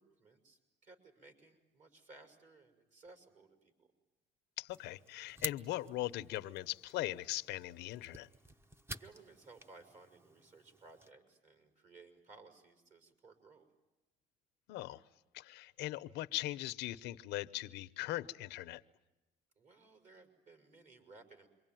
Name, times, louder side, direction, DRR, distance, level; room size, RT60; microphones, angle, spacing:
voice 1, 0.0-3.9 8.9-13.7 19.6-21.5, right 3 dB, 45° right, 5.8 m, -59 dB
voice 2, 4.6-8.3 14.7-15.0 15.3-18.8, left 16 dB, 90° left, 0.9 m, -40 dB
sound 1, 4.7-11.1, right 1 dB, 15° right, 1.1 m, -50 dB
27.5 x 23.5 x 9.2 m
cardioid pair, 110°, 17 cm